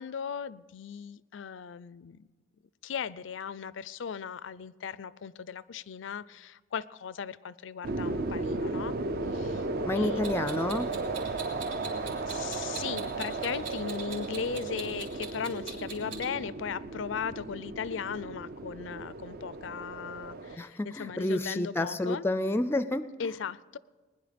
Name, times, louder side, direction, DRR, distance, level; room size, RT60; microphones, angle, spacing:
voice 1, 0.0-2.3 2.8-9.0 9.3-9.7 10.0-10.2 12.3-22.3 23.2-23.8, left 6 dB, 80° left, 19 dB, 0.4 m, -37 dB
sound 1, 7.8-20.6, right 3 dB, 55° right, 0.6 m, -35 dB
voice 2, 9.8-10.9 20.6-23.3, left 1 dB, 15° left, 13 dB, 0.4 m, -30 dB
Clock, 10.2-16.3, right 6 dB, 80° right, 2.9 m, -42 dB
20.0 x 10.5 x 5.1 m, 1.3 s
head